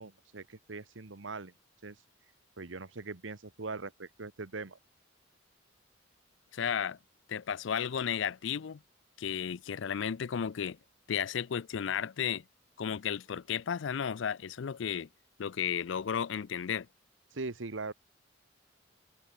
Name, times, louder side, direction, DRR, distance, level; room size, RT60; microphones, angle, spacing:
voice 1, 0.0-1.5 1.8-2.0 2.6-4.8 17.3-17.9, right 3 dB, 75° right, 1.2 m, -41 dB
voice 2, 6.5-7.0 7.3-8.8 9.2-10.8 11.1-12.4 12.8-15.1 15.4-16.9, left 8 dB, 70° left, 0.4 m, -33 dB
head